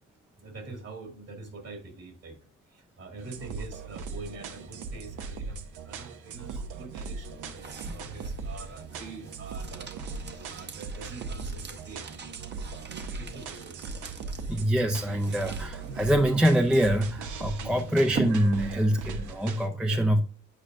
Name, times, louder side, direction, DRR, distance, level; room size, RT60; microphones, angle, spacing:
voice 1, 0.4-2.4 2.7-9.9 10.4-12.1 13.2-13.8 17.6-17.8 19.8-20.0, right 3 dB, 55° right, 4 dB, 2.2 m, -44 dB
sound 1, 3.2-19.7, right 4 dB, 75° right, 0.8 m, -39 dB
sound 2, 6.9-19.1, right 5 dB, 35° right, 0.9 m, -42 dB
voice 2, 14.5-20.2, equal, 5° right, 6 dB, 0.4 m, -25 dB
8.4 x 4.9 x 2.6 m, 0.39 s
cardioid pair, 90°, 30 cm